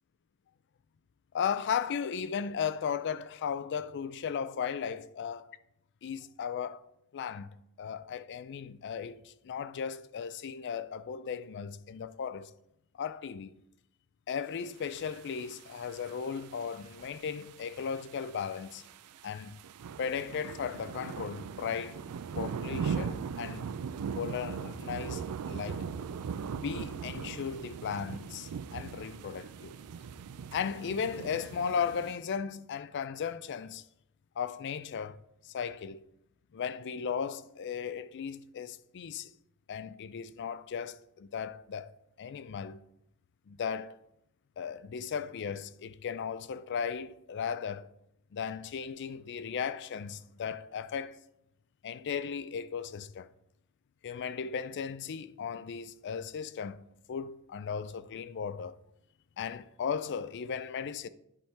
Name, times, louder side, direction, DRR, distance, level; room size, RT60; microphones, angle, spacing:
voice 1, 1.3-5.6 6.0-6.9 7.1-7.5 7.8-12.5 13.0-13.5 14.3-18.8 19.2-19.6 20.0-22.0 22.4-23.7 24.2-25.8 26.6-29.7 30.5-33.8 34.4-35.2 35.4-36.1 36.5-39.3 39.7-41.9 42.2-42.8 43.5-44.0 44.6-47.9 48.3-51.2 51.8-53.3 54.0-58.7 59.4-61.1, left 7 dB, 50° left, 0.4 m, -36 dB
sound 1, 15.0-32.1, right 6 dB, 80° right, 0.4 m, -40 dB
10.5 x 3.6 x 4.4 m
head